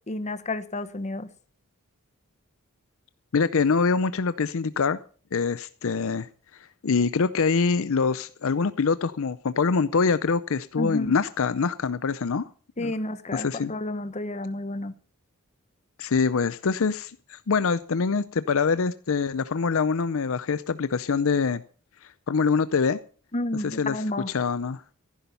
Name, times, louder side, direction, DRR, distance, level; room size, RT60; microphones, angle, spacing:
voice 1, 0.1-1.3 10.7-11.1 12.8-14.9 23.3-24.3, left 2 dB, 30° left, 1.0 m, -30 dB
voice 2, 3.3-5.0 5.3-6.3 6.8-12.5 12.8-12.9 13.3-13.7 16.0-21.6 22.0-23.0 23.6-24.8, left 5 dB, 65° left, 0.6 m, -24 dB
14.5 x 11.5 x 5.4 m
head